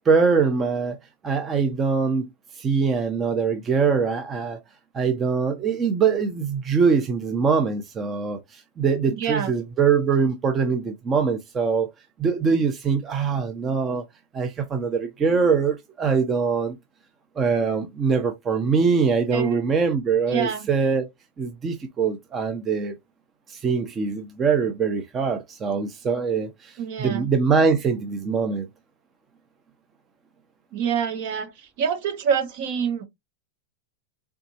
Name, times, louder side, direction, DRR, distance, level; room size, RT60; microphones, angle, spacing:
voice 1, 0.1-1.0 1.2-2.3 2.6-4.6 4.9-11.9 12.2-14.0 14.3-16.8 17.4-21.1 21.4-23.0 23.5-28.7, right 5 dB, 20° right, 0.5 m, -23 dB
voice 2, 9.1-9.5 19.3-19.6 20.3-20.7 26.8-27.3 30.7-31.5 31.8-33.0, right 7 dB, 50° right, 1.2 m, -26 dB
4.0 x 3.4 x 2.7 m
supercardioid pair, 155°, 0 cm